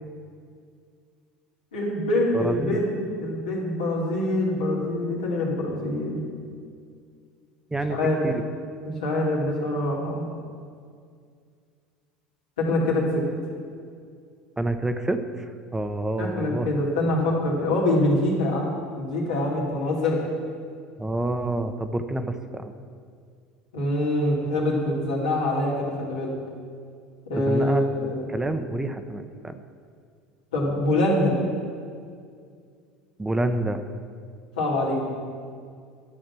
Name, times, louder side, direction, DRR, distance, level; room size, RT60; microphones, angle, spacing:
voice 1, 1.7-2.9 3.2-6.2 7.9-8.3 8.8-10.2 12.6-13.2 16.2-18.7 18.9-20.2 23.7-26.3 27.3-28.2 30.5-31.4 34.6-35.0, left 1 dB, 85° left, -4 dB, 2.6 m, -24 dB
voice 2, 2.3-2.8 7.7-8.0 8.2-8.4 14.6-16.7 21.0-22.7 27.3-29.6 33.2-33.8, right 2 dB, 15° right, 8 dB, 0.7 m, -28 dB
12.0 x 6.4 x 6.1 m, 2.2 s
hypercardioid pair, 80°, 4 cm